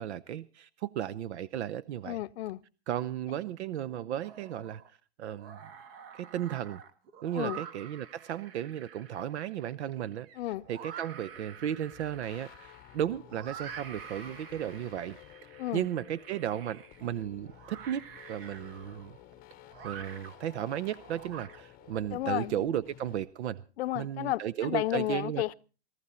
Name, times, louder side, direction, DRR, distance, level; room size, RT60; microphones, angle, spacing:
voice 1, 0.0-2.2 2.9-4.8 5.2-5.6 6.1-6.8 7.2-10.3 10.7-15.2 15.7-19.2 19.8-23.6 23.9-25.4, right 11 dB, 85° right, 0.7 m, -35 dB
voice 2, 2.1-2.6 7.3-7.6 10.4-10.7 15.6-15.9 22.1-22.7 23.8-25.5, left 15 dB, 70° left, 0.6 m, -32 dB
sound 1, 4.2-4.9 5.3-22.0, right 7 dB, 60° right, 1.7 m, -48 dB
sound 2, 11.3-23.2, left 16 dB, 30° left, 0.7 m, -54 dB
19.0 x 14.0 x 4.2 m
hypercardioid pair, 135°, 33 cm